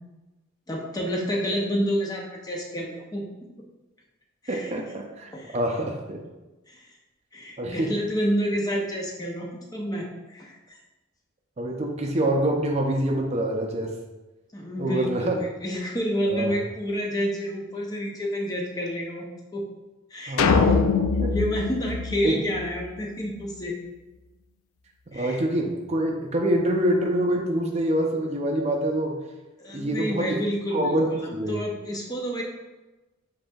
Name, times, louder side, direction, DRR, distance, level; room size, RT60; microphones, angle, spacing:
voice 1, 0.7-3.3 4.4-4.7 5.3-5.6 6.7-6.9 7.3-10.8 14.5-19.7 20.1-20.8 21.3-23.8 25.1-25.4 29.6-32.4, equal, 20° left, 0 dB, 0.5 m, -29 dB
voice 2, 4.5-6.2 7.6-7.9 11.6-13.9 14.8-15.4 16.3-16.5 20.3-21.3 22.2-22.4 25.1-29.2 29.7-30.4 30.7-31.6, right 1 dB, 30° right, 2 dB, 0.5 m, -26 dB
sound 1, 20.4-22.9, left 5 dB, 90° left, 0.3 m, -23 dB
7.7 x 2.7 x 2.3 m, 1.1 s
head